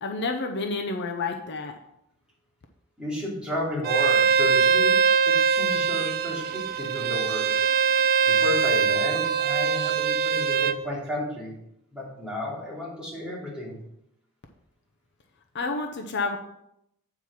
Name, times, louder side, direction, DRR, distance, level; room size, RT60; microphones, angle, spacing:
voice 1, 0.0-1.7 15.5-16.4, left 3 dB, 50° left, 3 dB, 0.7 m, -29 dB
voice 2, 3.0-7.5 8.3-11.6 11.9-13.8, left 1 dB, 5° right, -6 dB, 2.8 m, -33 dB
Bowed string instrument, 3.8-10.8, right 6 dB, 45° right, 0.4 m, -22 dB
8.8 x 4.7 x 5.8 m, 0.79 s
head